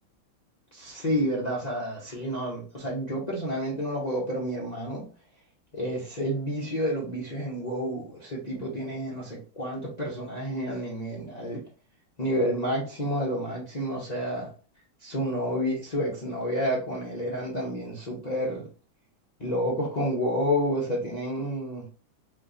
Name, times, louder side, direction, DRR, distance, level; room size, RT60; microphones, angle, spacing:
voice 1, 0.7-5.0 5.7-11.6 12.2-14.5 15.0-18.7 19.4-21.9, equal, 75° left, -4 dB, 0.3 m, -30 dB
4.5 x 3.2 x 2.6 m, 0.38 s
omnidirectional pair, 2.3 m